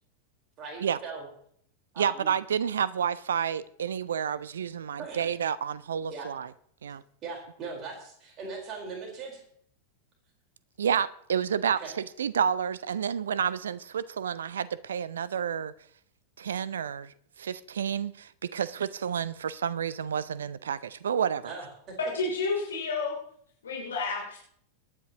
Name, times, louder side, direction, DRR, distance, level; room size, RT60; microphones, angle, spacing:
voice 1, 0.6-1.3 1.9-2.3 5.0-5.3 6.1-6.3 7.2-9.4 11.8-11.9 21.4-22.0, right 4 dB, 35° right, 0 dB, 4.2 m, -39 dB
voice 2, 2.0-6.5 6.8-7.0 10.8-15.7 16.4-21.5, right 8 dB, 65° right, 18 dB, 0.5 m, -30 dB
voice 3, 22.0-23.1 23.6-24.4, left 3 dB, 65° left, -2 dB, 3.2 m, -30 dB
23.5 x 9.7 x 2.9 m, 0.65 s
figure-of-eight pair, 90°, 0 cm